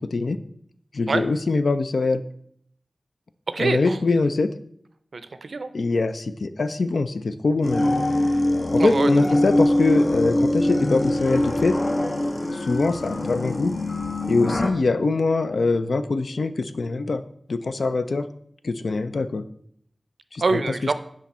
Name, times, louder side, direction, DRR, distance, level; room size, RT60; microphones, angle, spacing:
voice 1, 0.9-2.2 3.6-4.5 5.7-7.9 8.7-11.7 12.5-13.7 14.3-17.2 17.5-18.3 18.6-19.4 20.3-20.6, left 3 dB, 90° left, 11 dB, 0.4 m, -23 dB
voice 2, 3.5-4.0 5.1-5.7 8.8-9.4 20.4-20.9, right 3 dB, 90° right, 11 dB, 0.5 m, -25 dB
sound 1, 7.6-14.7, left 1 dB, 50° left, 0.6 m, -23 dB
5.9 x 5.0 x 4.2 m, 0.66 s
wide cardioid pair, 50°, 0 cm